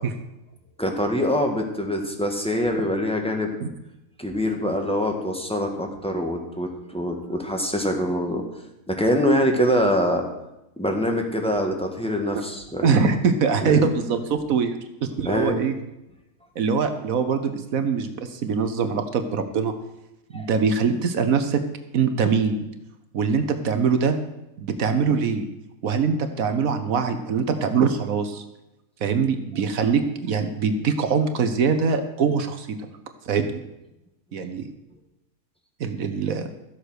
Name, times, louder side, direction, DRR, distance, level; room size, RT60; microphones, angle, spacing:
voice 1, 0.8-3.5 4.2-8.4 8.9-10.2 10.8-12.9 13.6-13.9 15.2-15.6 20.3-20.5, equal, 5° left, 2 dB, 1.6 m, -24 dB
voice 2, 12.8-14.7 15.0-15.7 16.6-19.7 20.3-21.6 21.9-22.6 23.1-24.2 24.6-25.5 25.8-28.4 29.0-32.7 33.2-33.6 34.3-34.6 35.8-36.5, right 5 dB, 75° right, 8 dB, 1.3 m, -23 dB
13.5 x 8.0 x 6.4 m, 0.91 s
omnidirectional pair, 1.5 m